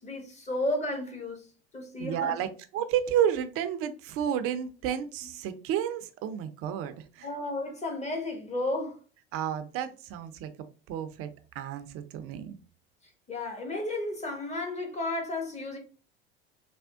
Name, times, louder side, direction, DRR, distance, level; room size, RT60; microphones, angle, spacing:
voice 1, 0.0-1.5 1.7-2.4 7.2-9.0 13.3-15.8, left 2 dB, 20° left, 1.1 m, -33 dB
voice 2, 2.0-7.3 9.3-10.5 10.9-11.3 11.5-12.6, right 10 dB, 50° right, 0.5 m, -31 dB
3.4 x 2.1 x 2.3 m
hypercardioid pair, 75°, 30 cm